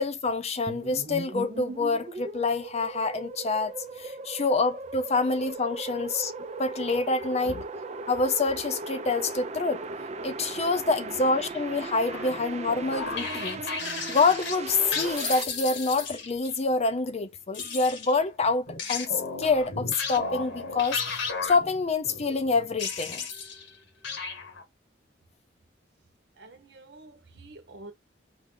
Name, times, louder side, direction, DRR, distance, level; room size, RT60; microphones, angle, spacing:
voice 1, 0.0-3.7 4.0-6.3 6.6-7.6 8.1-9.8 10.2-13.6 14.1-21.0 21.4-23.3, left 3 dB, 35° left, 0.6 m, -26 dB
sound 1, 0.7-15.4, right 3 dB, 40° right, 0.6 m, -38 dB
sound 2, 12.1-16.5 17.5-23.8 24.0-24.6, left 4 dB, 75° left, 1.3 m, -34 dB
voice 2, 26.3-27.9, right 2 dB, 65° right, 1.0 m, -48 dB
4.9 x 2.7 x 3.7 m
head